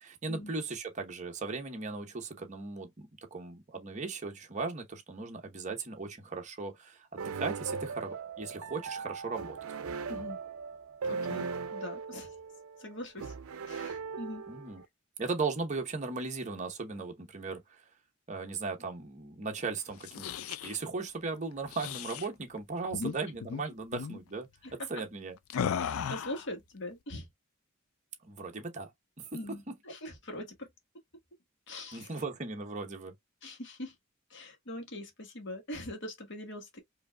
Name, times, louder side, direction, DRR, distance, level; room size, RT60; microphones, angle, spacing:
voice 1, 0.0-9.6 14.5-14.8 15.2-17.8 18.3-24.5 24.9-25.4 28.2-28.9 29.2-29.3 31.9-33.1, right 4 dB, 35° right, 0.9 m, -37 dB
sound 1, 7.2-14.9, right 5 dB, 85° right, 0.5 m, -39 dB
voice 2, 10.1-10.4 11.0-12.3 12.8-13.3 13.7-14.5 22.9-23.2 24.6-25.0 25.8-27.2 29.3-30.7 31.7-32.1 33.4-33.9 34.3-36.8, left 1 dB, 60° left, 1.3 m, -42 dB
sound 2, 19.9-20.8 21.7-22.3 22.9-23.2 23.4-23.6 23.9-24.2 25.5-26.5, left 7 dB, 85° left, 0.4 m, -35 dB
4.9 x 2.7 x 2.2 m
head